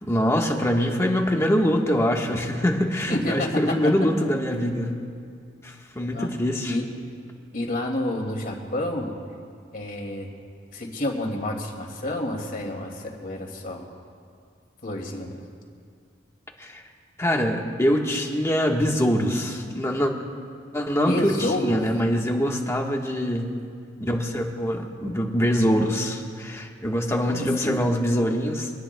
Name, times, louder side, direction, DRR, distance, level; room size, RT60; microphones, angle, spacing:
voice 1, 0.0-5.0 5.6-6.8 16.6-16.8 17.2-20.1 20.7-23.5 24.0-28.7, equal, 15° left, 1 dB, 1.4 m, -24 dB
voice 2, 3.1-4.1 6.1-6.3 6.7-6.8 7.5-9.2 9.7-10.3 10.7-13.9 14.8-15.4 21.1-21.8 27.3-27.8, left 1 dB, 50° left, 1 dB, 2.4 m, -29 dB
25.0 x 18.5 x 2.3 m, 2.2 s
head